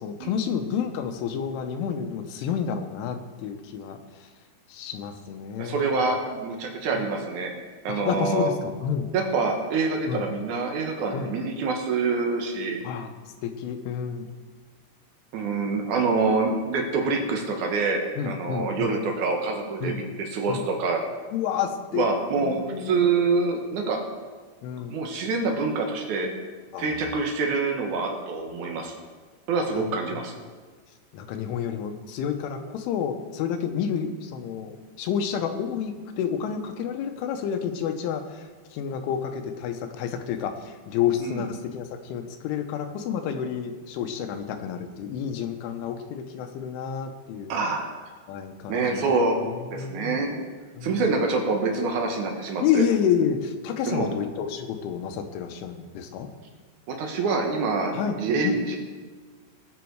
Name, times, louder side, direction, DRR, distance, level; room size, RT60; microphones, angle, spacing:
voice 1, 0.0-4.0 4.7-5.9 6.9-7.0 7.9-9.1 10.1-10.3 11.1-11.3 12.9-13.1 13.4-14.3 18.2-18.9 19.8-20.0 20.5-20.6 21.3-22.1 22.4-22.9 24.6-25.0 26.7-26.9 28.6-28.8 29.7-29.9 31.1-38.4 38.7-47.5 48.3-49.1 49.5-50.2 50.8-51.0 52.6-56.3 57.9-58.2 58.4-58.6, left 8 dB, 85° left, 6 dB, 3.4 m, -29 dB
voice 2, 5.6-7.5 7.8-8.5 9.1-12.8 15.3-21.0 21.9-24.0 24.8-26.3 26.8-28.9 29.5-30.3 41.2-41.4 47.5-47.8 48.7-49.4 49.7-50.4 50.8-52.8 53.9-54.1 56.9-58.8, right 4 dB, 70° right, 2 dB, 1.9 m, -26 dB
21.0 x 7.5 x 4.7 m, 1.5 s
omnidirectional pair, 5.4 m